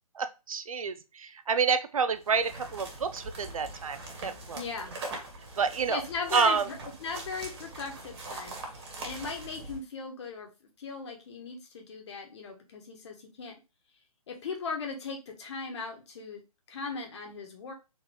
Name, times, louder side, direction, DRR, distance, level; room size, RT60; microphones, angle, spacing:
voice 1, 0.1-4.6 5.6-6.0 6.3-6.7, right 5 dB, 65° right, 10 dB, 0.6 m, -28 dB
sound 1, 2.1-9.8, right 2 dB, 40° right, 1.6 m, -42 dB
voice 2, 4.5-4.9 5.9-10.5 10.8-13.5 14.3-16.4 16.7-17.7, left 4 dB, 50° left, 3 dB, 1.2 m, -38 dB
3.9 x 3.0 x 3.6 m, 0.28 s
figure-of-eight pair, 140°, 19 cm